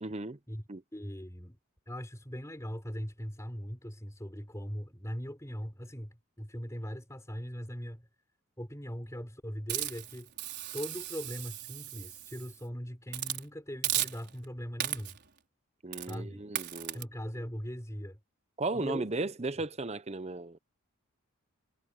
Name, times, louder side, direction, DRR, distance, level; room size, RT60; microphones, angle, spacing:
voice 1, 0.0-0.4 0.7-0.8 15.8-17.0 18.6-20.6, right 2 dB, 30° right, 0.7 m, -35 dB
voice 2, 0.9-1.6 1.9-8.0 8.6-10.3 10.7-15.1 16.1-16.4 16.9-18.2 18.7-19.1, equal, 15° left, 3.9 m, -40 dB
Hiss, 9.7-12.6 13.1-13.4 13.8-14.4 14.8-15.3 15.9-16.2 16.6-17.0, right 13 dB, 50° right, 5.0 m, -36 dB
head